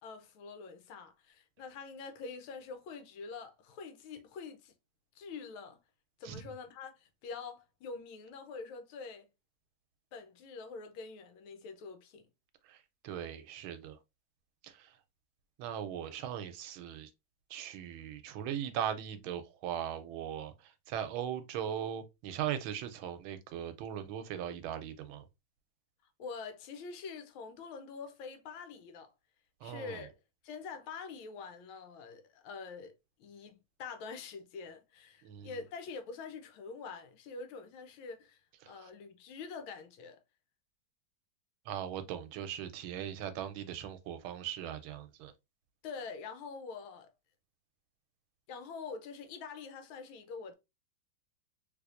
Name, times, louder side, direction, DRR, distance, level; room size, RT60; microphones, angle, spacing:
voice 1, 0.0-4.7 5.1-5.8 6.2-9.3 10.1-12.3 26.2-29.1 29.6-30.1 30.4-32.9 33.2-38.4 38.7-40.2 45.8-47.1 48.5-50.5, left 5 dB, 90° left, 1.5 m, -45 dB
voice 2, 12.6-14.0 14.6-15.0 15.6-17.1 17.5-25.3 29.6-30.0 35.2-35.6 38.6-38.9 41.7-45.3, right 10 dB, 90° right, 1.4 m, -39 dB
3.4 x 3.2 x 2.4 m
omnidirectional pair, 2.2 m